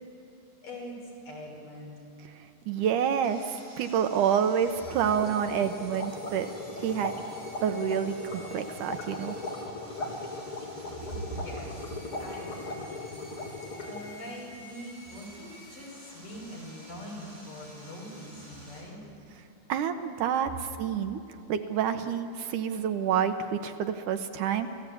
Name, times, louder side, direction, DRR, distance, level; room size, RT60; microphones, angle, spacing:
voice 1, 0.6-2.0 11.1-11.7 12.2-13.3 13.8-19.0 24.7-24.8, equal, 70° left, -2 dB, 7.1 m, -42 dB
voice 2, 2.7-6.5 6.8-7.1 7.6-9.4 19.7-21.2 21.5-24.7, right 8 dB, 75° right, 8 dB, 2.3 m, -28 dB
Sawing, 3.2-18.8, equal, 10° right, 6.3 m, -51 dB
sound 1, 4.8-14.2, left 2 dB, 40° left, 3.5 m, -38 dB
29.5 x 16.0 x 8.5 m, 2.9 s
omnidirectional pair, 3.9 m